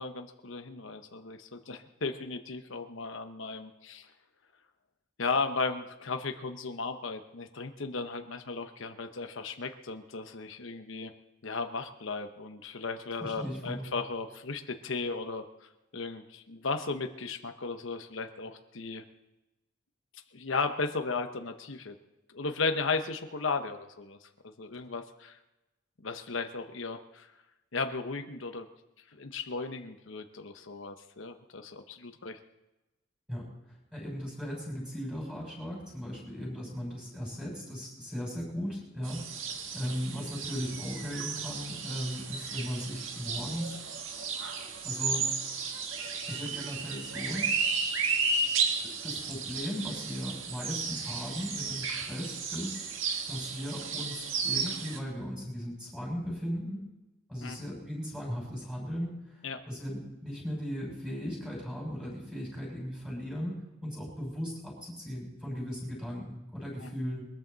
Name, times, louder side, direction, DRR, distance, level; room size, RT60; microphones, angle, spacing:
voice 1, 0.0-4.1 5.2-11.1 11.4-19.0 20.3-21.9 22.3-24.3 24.6-25.4 26.0-27.3 27.7-28.7 29.1-32.4 57.4-57.7 59.4-59.6 66.8-66.9, left 4 dB, 75° left, 7 dB, 0.9 m, -35 dB
voice 2, 13.2-13.9 33.3-33.5 33.9-43.8 44.8-45.3 46.3-47.5 49.0-52.9 53.3-56.8 57.3-59.4 59.7-67.3, equal, 5° right, -4 dB, 6.0 m, -37 dB
sound 1, 39.0-55.0, right 5 dB, 80° right, 1.7 m, -34 dB
22.0 x 13.5 x 4.0 m, 1.0 s
head